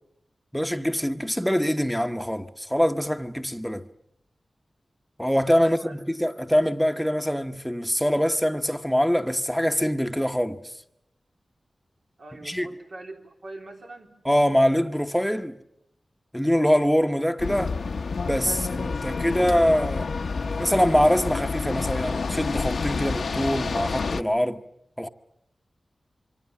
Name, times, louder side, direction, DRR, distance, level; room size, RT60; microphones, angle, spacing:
voice 1, 0.5-3.9 5.2-10.6 12.4-12.7 14.2-15.6 16.3-17.7 18.2-20.1 20.6-24.6 25.0-25.1, equal, ahead, 1.1 m, -24 dB
voice 2, 5.6-6.2 12.2-14.1, right 2 dB, 75° right, 3.9 m, -43 dB
sound 1, 17.4-24.2, left 4 dB, 85° left, 0.9 m, -29 dB
27.0 x 24.0 x 7.2 m
wide cardioid pair, 75°, 0 cm